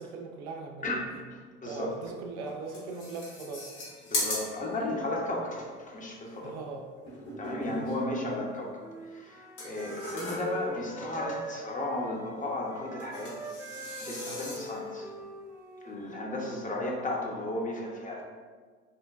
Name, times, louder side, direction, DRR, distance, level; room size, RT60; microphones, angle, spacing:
voice 1, 0.0-1.0 1.6-3.7 6.4-6.9 7.7-7.8, right 4 dB, 70° right, 2 dB, 0.5 m, -40 dB
voice 2, 0.8-2.0 4.1-6.6 7.4-8.8 9.1-13.4 14.0-15.1 15.8-18.2, left 1 dB, 20° left, -1 dB, 0.7 m, -34 dB
sound 1, 2.1-2.2 2.5-5.1 7.1-8.1 9.6-10.7 13.0-14.9, left 1 dB, 65° left, 1.2 m, -38 dB
Wind instrument woodwind instrument, 8.8-16.5, equal, 10° right, 0.3 m, -42 dB
3.9 x 2.2 x 2.2 m, 1.5 s
figure-of-eight pair, 55°, 35 cm